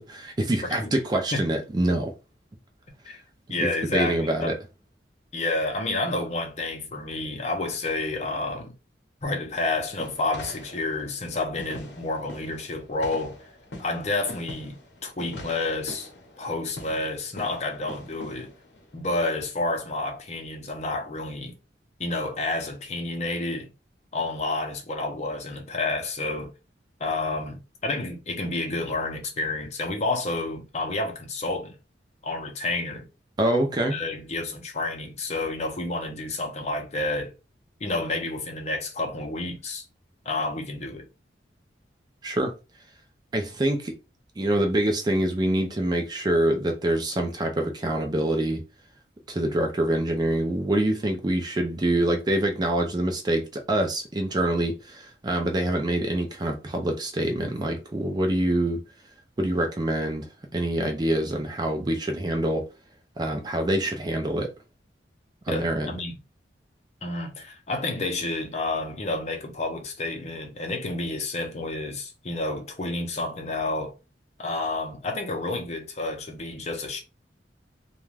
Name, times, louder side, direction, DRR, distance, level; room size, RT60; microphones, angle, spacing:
voice 1, 0.1-2.1 3.6-4.5 33.4-34.0 42.2-42.5 43.3-43.9 44.4-48.6 49.3-58.8 59.4-62.7 63.2-64.5 65.5-66.0, right 1 dB, 25° right, 0.4 m, -25 dB
voice 2, 3.5-4.6 5.3-8.7 9.2-13.4 13.8-14.7 15.0-16.1 16.4-18.5 18.9-21.5 22.0-23.7 24.1-26.5 27.0-31.8 32.2-33.0 33.9-37.3 37.8-39.8 40.2-41.0 65.5-66.2 67.0-73.9 74.4-77.0, left 2 dB, 40° left, 0.6 m, -30 dB
sound 1, 9.5-19.2, left 1 dB, 80° left, 0.8 m, -43 dB
2.4 x 2.2 x 3.2 m
head